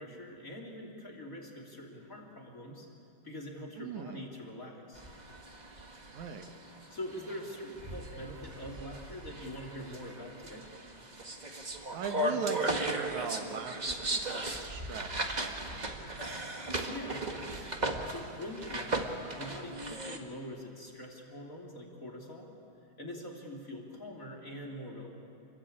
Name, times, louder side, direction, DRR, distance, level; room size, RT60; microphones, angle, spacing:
voice 1, 0.0-2.9 3.2-5.1 6.9-10.7 16.8-17.7 18.1-22.5 23.0-25.1, left 1 dB, 25° left, 1 dB, 3.3 m, -44 dB
voice 2, 3.8-4.3 6.1-6.5 11.5-16.1, right 6 dB, 75° right, 6 dB, 2.6 m, -40 dB
sound 1, 5.0-20.2, right 2 dB, 25° right, 1.0 m, -37 dB
28.5 x 21.5 x 8.7 m, 2.6 s
omnidirectional pair, 3.5 m